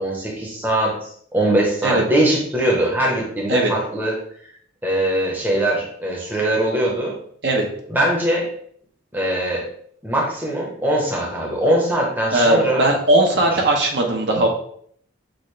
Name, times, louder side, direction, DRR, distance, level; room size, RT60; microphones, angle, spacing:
voice 1, 0.0-4.2 4.8-7.2 7.9-8.5 9.1-9.7 10.0-12.8, right 1 dB, 10° right, -3 dB, 0.8 m, -21 dB
voice 2, 12.3-14.5, right 1 dB, 55° right, 1 dB, 0.9 m, -18 dB
6.3 x 2.5 x 3.2 m, 0.62 s
head